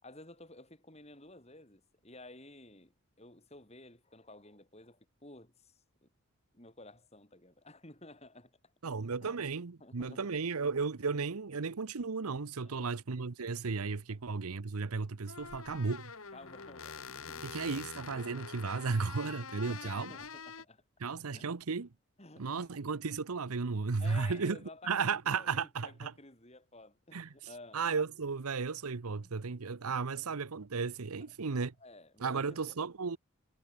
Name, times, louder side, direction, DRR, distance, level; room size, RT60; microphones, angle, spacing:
voice 1, 0.0-6.1 6.5-8.6 8.8-8.9 9.2-9.5 9.8-10.2 12.6-12.8 16.3-17.9 19.2-20.8 21.3-21.6 22.2-22.7 24.0-25.5 25.8-27.8 29.2-29.3 29.8-30.3 31.8-32.8, left 2 dB, 30° left, 4.4 m, -53 dB
voice 2, 8.8-16.1 17.4-20.1 21.0-21.9 22.4-24.6 24.8-26.1 27.1-27.3 27.7-31.7 32.2-33.2, right 4 dB, 85° right, 0.8 m, -34 dB
sound 1, 14.7-14.8 15.3-20.6, left 5 dB, 75° left, 2.2 m, -46 dB
head